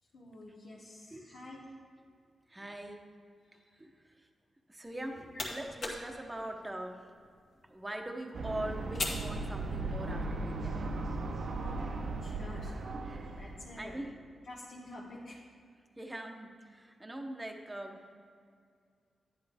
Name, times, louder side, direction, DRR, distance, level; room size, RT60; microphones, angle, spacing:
voice 1, 0.1-1.6 3.5-3.6 5.2-5.3 11.6-11.9 12.2-12.7 13.3-14.0 14.4-15.4, left 1 dB, 80° left, -6 dB, 1.3 m, -49 dB
voice 2, 2.5-3.0 3.8-4.3 4.7-7.1 7.7-10.9 13.0-13.2 13.8-14.1 16.0-18.1, right 1 dB, 15° right, 3 dB, 0.9 m, -42 dB
sound 1, 4.8-10.2, left 2 dB, 60° left, 1.7 m, -43 dB
sound 2, 8.3-13.9, right 2 dB, 65° right, 0.8 m, -37 dB
10.5 x 10.5 x 3.5 m, 2.2 s
wide cardioid pair, 125°, 0 cm